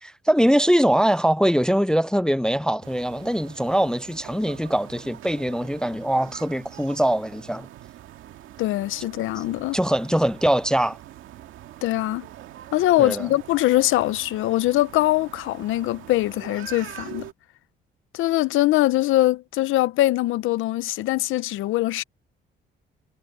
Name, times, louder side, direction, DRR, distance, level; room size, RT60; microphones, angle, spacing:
voice 1, 0.0-7.7 9.4-9.5 9.7-11.0 13.0-13.3, equal, 5° left, 0.3 m, -22 dB
sound 1, 2.8-17.3, right 13 dB, 85° right, 2.1 m, -43 dB
voice 2, 8.6-9.8 11.8-12.3 12.7-17.3 18.1-22.0, left 16 dB, 85° left, 0.7 m, -22 dB
cardioid pair, 90°, 20 cm